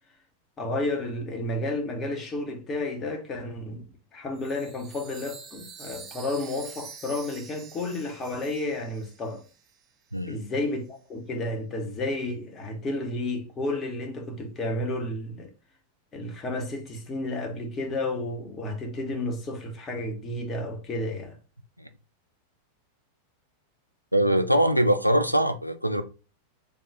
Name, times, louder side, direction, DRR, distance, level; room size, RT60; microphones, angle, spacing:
voice 1, 0.6-3.8 4.1-9.4 10.3-15.5 16.1-21.4, left 2 dB, 25° left, 0.9 m, -31 dB
Chime, 4.4-9.9, right 6 dB, 30° right, 0.5 m, -46 dB
voice 2, 24.1-26.0, right 1 dB, 90° right, 0.3 m, -22 dB
3.5 x 2.4 x 3.3 m
figure-of-eight pair, 90°, 0 cm